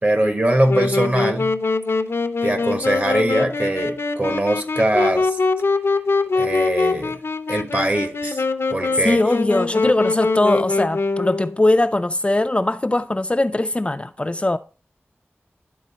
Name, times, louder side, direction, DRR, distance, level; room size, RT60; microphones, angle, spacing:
voice 1, 0.0-1.5 2.4-5.4 6.3-7.2 7.5-8.4 8.7-9.2, right 1 dB, 40° right, 1.2 m, -22 dB
Wind instrument woodwind instrument, 0.7-11.6, left 3 dB, 70° left, 0.6 m, -23 dB
voice 2, 9.0-14.6, left 2 dB, 25° left, 0.3 m, -20 dB
10.0 x 3.9 x 4.1 m
wide cardioid pair, 75°, 4 cm